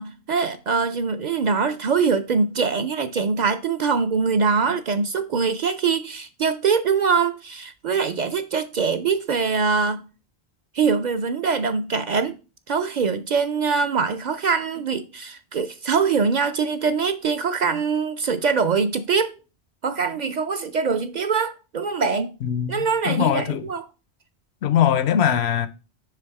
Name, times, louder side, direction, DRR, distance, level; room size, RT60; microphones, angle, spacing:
voice 1, 0.0-10.1 10.7-12.3 12.7-19.4 19.8-22.3 22.7-23.9, right 5 dB, 55° right, 0.5 m, -23 dB
voice 2, 22.4-23.6 24.6-25.7, left 9 dB, 85° left, 0.9 m, -21 dB
6.8 x 3.4 x 4.6 m
omnidirectional pair, 1.1 m